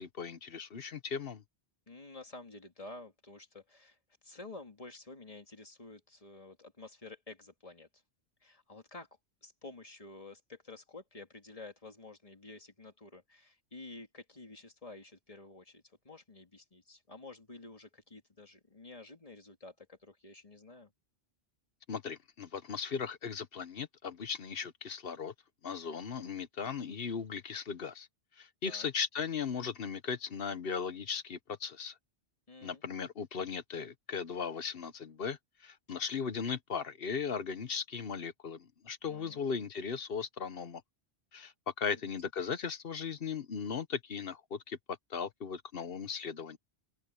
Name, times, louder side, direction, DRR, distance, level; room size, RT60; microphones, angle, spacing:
voice 1, 0.0-1.4 21.9-25.3 25.6-28.1 28.4-32.0 32.6-40.8 41.3-46.6, left 6 dB, 60° left, 1.2 m, -37 dB
voice 2, 1.9-4.0 4.2-7.9 8.4-9.1 9.4-20.9 28.7-28.9 32.5-32.8 35.9-36.0 39.1-39.6, left 2 dB, 35° left, 2.4 m, -51 dB
open air
omnidirectional pair, 1.1 m